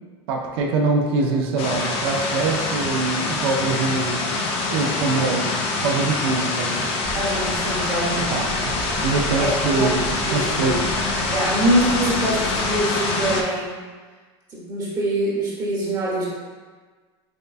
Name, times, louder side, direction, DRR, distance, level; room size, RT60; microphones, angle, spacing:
voice 1, 0.3-4.2 4.7-5.5 5.8-6.9 8.1-8.7 9.0-10.8, right 3 dB, 70° right, 1 dB, 0.5 m, -24 dB
sound 1, 1.6-13.4, left 3 dB, 45° left, 0.5 m, -25 dB
sound 2, 7.0-12.8, right 1 dB, 5° left, 0.7 m, -35 dB
voice 2, 7.1-8.3 8.9-9.0 9.4-9.9 10.3-10.8 11.3-13.8 14.5-16.3, right 1 dB, 30° right, -6 dB, 0.9 m, -24 dB
4.4 x 2.2 x 2.4 m, 1.4 s
supercardioid pair, 120°, 14 cm